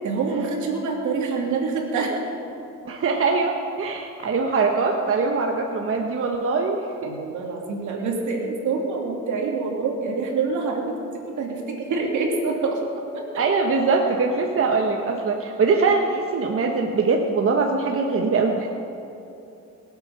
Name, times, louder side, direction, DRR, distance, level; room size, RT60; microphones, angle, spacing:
voice 1, 0.0-2.2 7.0-13.3, right 4 dB, 75° right, 0 dB, 2.7 m, -26 dB
voice 2, 2.8-7.1 13.4-18.7, right 4 dB, 45° right, 2 dB, 1.3 m, -22 dB
21.5 x 8.1 x 5.7 m, 2.8 s
cardioid pair, 90°, 30 cm